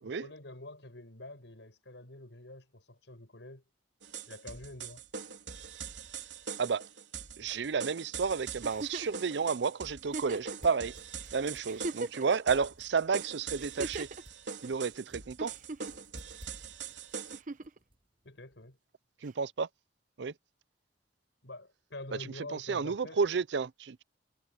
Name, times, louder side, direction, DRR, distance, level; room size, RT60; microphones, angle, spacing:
voice 1, 0.0-3.6 4.3-5.0 18.2-18.8 21.4-23.2, left 2 dB, 90° left, 5.4 m, -47 dB
sound 1, 4.0-17.4, right 6 dB, 90° right, 3.5 m, -43 dB
voice 2, 6.6-6.9 7.4-11.0 11.3-14.1 14.6-15.6 19.2-19.7 20.2-20.3 22.2-24.0, right 5 dB, 75° right, 0.5 m, -31 dB
Giggle, 8.6-9.2 10.1-10.6 11.2-11.3 11.6-12.4 13.6-14.2 15.4-16.0 17.3-17.8 19.3-19.4, right 2 dB, 45° right, 0.9 m, -39 dB
sound 2, 9.0-18.7, equal, 30° right, 7.0 m, -59 dB
head